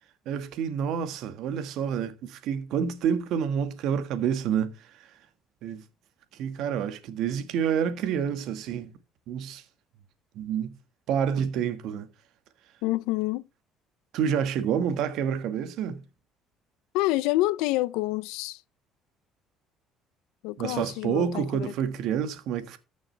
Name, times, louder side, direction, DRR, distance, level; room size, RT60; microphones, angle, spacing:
voice 1, 0.2-5.1 5.6-5.8 6.3-8.9 9.3-9.6 10.3-10.7 11.1-12.1 14.1-16.0 20.6-22.8, right 8 dB, 75° right, 1.6 m, -28 dB
voice 2, 12.8-13.4 16.9-18.6 20.4-21.7, left 18 dB, 90° left, 0.5 m, -27 dB
14.0 x 6.3 x 3.3 m
cardioid pair, 95°, 0 cm